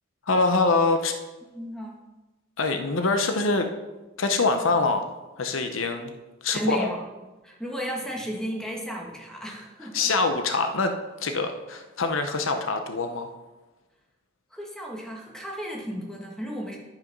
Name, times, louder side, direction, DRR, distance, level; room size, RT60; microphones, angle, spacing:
voice 1, 0.3-1.1 2.6-3.7 4.2-5.1 5.4-6.1 6.4-6.9 9.9-13.3, left 3 dB, 75° left, 7 dB, 0.8 m, -24 dB
voice 2, 1.5-2.0 6.5-7.0 7.4-10.1 14.5-16.8, equal, 5° left, -1 dB, 1.6 m, -34 dB
10.5 x 5.9 x 5.3 m, 1.1 s
head